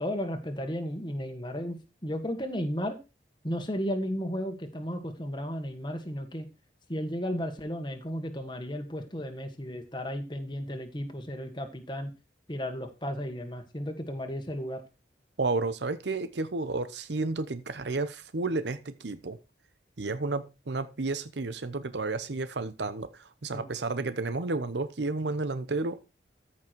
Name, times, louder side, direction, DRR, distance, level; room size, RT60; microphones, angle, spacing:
voice 1, 0.0-3.0 3.4-6.5 6.9-12.1 12.5-14.8 23.5-23.7, equal, 25° left, 6 dB, 1.6 m, -34 dB
voice 2, 15.4-19.4 20.0-26.0, right 3 dB, 75° right, 12 dB, 0.8 m, -31 dB
14.0 x 6.0 x 4.6 m, 0.29 s
head